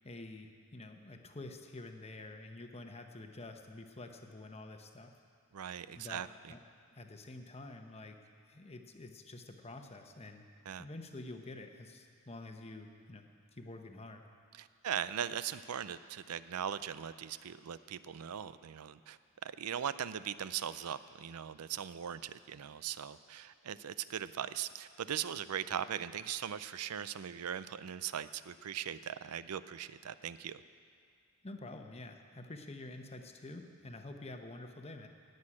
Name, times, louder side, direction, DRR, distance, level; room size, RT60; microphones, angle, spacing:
voice 1, 0.0-5.1 5.9-6.2 6.5-6.6 7.0-8.2 8.5-10.4 10.8-13.3 13.5-14.2 31.4-35.1, left 2 dB, 30° left, 5 dB, 0.9 m, -48 dB
voice 2, 5.5-6.5 10.7-10.9 14.6-30.6, right 9 dB, 80° right, 15 dB, 0.5 m, -40 dB
17.5 x 6.5 x 8.5 m, 2.2 s
head